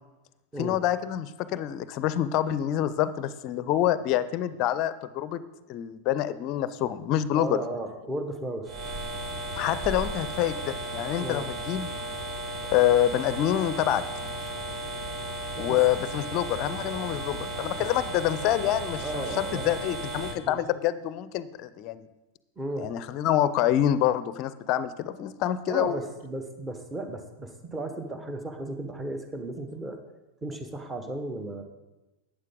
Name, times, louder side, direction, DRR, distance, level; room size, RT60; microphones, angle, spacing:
voice 1, 0.6-5.4 5.7-7.6 9.6-11.9 12.7-14.0 15.6-22.1 22.8-26.0, left 12 dB, 40° left, 15 dB, 0.5 m, -26 dB
voice 2, 7.3-8.7 11.2-11.5 15.5-15.8 16.5-16.6 17.8-17.9 18.6-18.7 19.0-19.8 20.4-20.7 22.6-22.9 25.7-30.0 30.4-31.6, right 2 dB, 15° right, 7 dB, 1.2 m, -35 dB
sound 1, 8.6-20.4, right 1 dB, 35° right, 1.3 m, -35 dB
12.0 x 8.9 x 3.8 m, 1.0 s
figure-of-eight pair, 90°, 0 cm